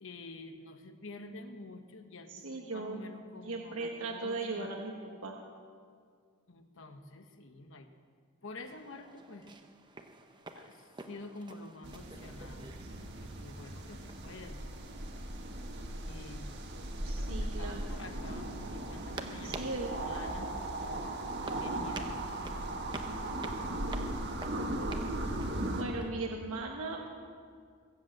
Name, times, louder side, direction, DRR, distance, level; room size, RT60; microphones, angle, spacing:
voice 1, 0.0-4.8 6.5-7.9 8.4-9.6 10.5-14.7 15.0-15.2 16.1-16.4 17.0-19.6 20.0-20.6 21.4-22.1, left 2 dB, 60° left, 7 dB, 1.1 m, -49 dB
voice 2, 2.3-3.0 3.4-4.9 5.2-5.4 17.0-17.8 19.4-19.9 25.7-27.1, right 3 dB, 80° right, 0 dB, 1.3 m, -38 dB
sound 1, 8.6-26.1, right 2 dB, 20° right, 0.8 m, -50 dB
sound 2, 11.8-25.8, right 1 dB, 50° right, 1.6 m, -38 dB
21.5 x 7.9 x 7.7 m, 2.1 s
head